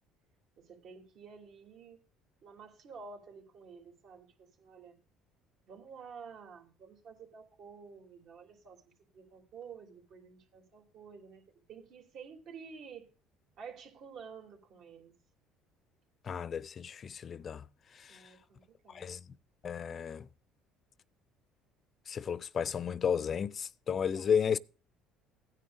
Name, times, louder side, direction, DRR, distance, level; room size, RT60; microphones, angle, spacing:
voice 1, 0.6-2.0 2.4-5.0 5.7-8.8 9.1-11.4 11.7-13.1 13.6-15.1 18.1-19.1 24.0-24.3, right 6 dB, 65° right, 3.0 m, -51 dB
voice 2, 16.3-17.6 18.0-18.2 18.9-19.2 19.6-20.3 22.1-24.6, left 7 dB, 40° left, 0.4 m, -33 dB
15.5 x 9.7 x 2.6 m
supercardioid pair, 95°, 0 cm